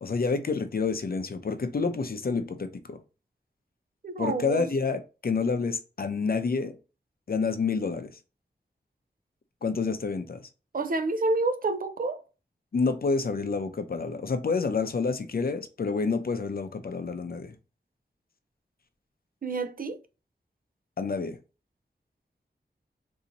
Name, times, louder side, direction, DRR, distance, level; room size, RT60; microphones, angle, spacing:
voice 1, 0.0-3.0 4.2-6.8 7.3-8.1 9.6-10.5 12.7-17.6 21.0-21.4, left 4 dB, 60° left, 0.6 m, -28 dB
voice 2, 4.0-4.7 10.7-12.2 19.4-20.0, right 3 dB, 50° right, 0.5 m, -28 dB
4.0 x 2.7 x 2.7 m
wide cardioid pair, 80°, 18 cm